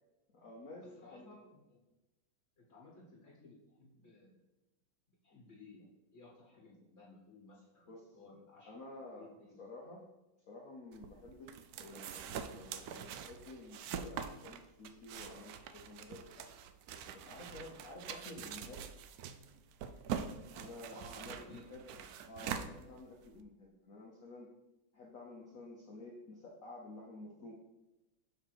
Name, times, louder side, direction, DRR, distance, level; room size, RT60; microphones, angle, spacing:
voice 1, 0.3-1.4 7.9-8.2 8.6-9.3 9.6-10.0 10.5-16.5 17.1-18.8 20.6-21.9 22.2-24.5 24.9-27.5, left 2 dB, 55° left, -2 dB, 1.1 m, -51 dB
voice 2, 1.0-1.8 2.6-4.3 5.2-8.8 9.1-9.6 20.9-22.1, left 2 dB, 40° left, -2 dB, 1.4 m, -58 dB
sound 1, 10.9-23.4, right 8 dB, 75° right, 0.8 m, -44 dB
7.2 x 3.4 x 5.9 m, 0.99 s
omnidirectional pair, 2.1 m